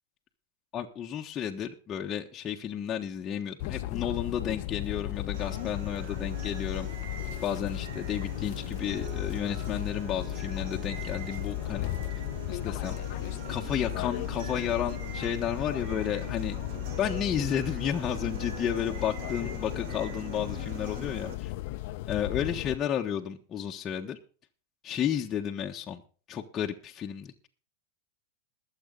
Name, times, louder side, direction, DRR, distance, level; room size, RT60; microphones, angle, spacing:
voice 1, 0.7-6.9 7.4-11.9 12.5-13.0 13.5-16.6 17.0-21.5 22.1-24.2 24.8-26.0 26.3-27.5, left 9 dB, 25° left, 0 dB, 1.4 m, -32 dB
sound 1, 3.6-22.8, left 16 dB, 55° left, 0.8 m, -35 dB
sound 2, 5.3-21.4, right 8 dB, 60° right, 3.2 m, -44 dB
21.5 x 8.0 x 4.0 m, 0.39 s
hypercardioid pair, 130°, 0 cm